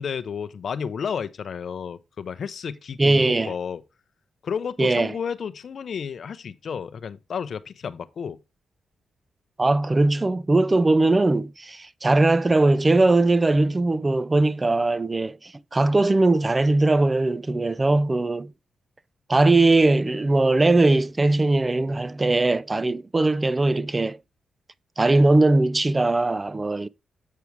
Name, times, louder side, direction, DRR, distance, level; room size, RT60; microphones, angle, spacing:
voice 1, 0.0-3.8 4.4-8.4, left 7 dB, 65° left, 0.6 m, -32 dB
voice 2, 3.0-3.5 4.8-5.1 9.6-18.5 19.3-24.2 25.0-26.9, right 2 dB, 30° right, 0.5 m, -20 dB
8.4 x 4.7 x 4.6 m
supercardioid pair, 55°, 0 cm